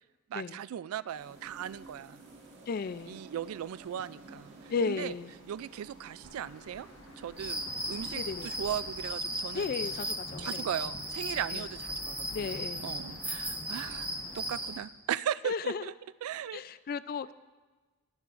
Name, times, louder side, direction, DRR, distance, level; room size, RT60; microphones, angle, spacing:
voice 1, 0.3-2.2 3.1-5.1 5.5-6.9 7.2-7.6 7.9-9.7 10.4-15.9 16.2-16.6, right 10 dB, 75° right, 17 dB, 0.3 m, -38 dB
sound 1, 1.1-9.0, right 2 dB, 55° right, 1.7 m, -53 dB
voice 2, 2.7-3.2 4.7-5.3 8.2-8.5 9.5-10.6 11.5-11.6 12.3-12.9 15.4-15.9 16.5-17.3, left 5 dB, 45° left, 15 dB, 0.3 m, -34 dB
Wind / Thunder / Rain, 6.2-14.5, left 1 dB, 65° left, 1.6 m, -50 dB
sound 2, 7.4-14.8, right 1 dB, 5° right, 1.1 m, -37 dB
21.0 x 9.5 x 2.5 m, 1.3 s
head